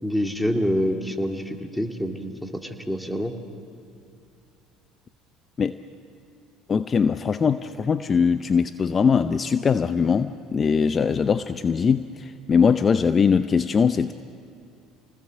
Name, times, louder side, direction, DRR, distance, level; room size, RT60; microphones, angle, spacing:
voice 1, 0.0-3.3, equal, 5° left, 4 dB, 2.6 m, -26 dB
voice 2, 6.7-14.1, left 6 dB, 35° left, 11 dB, 0.7 m, -21 dB
29.0 x 19.5 x 7.6 m, 2.5 s
hypercardioid pair, 75°, 0 cm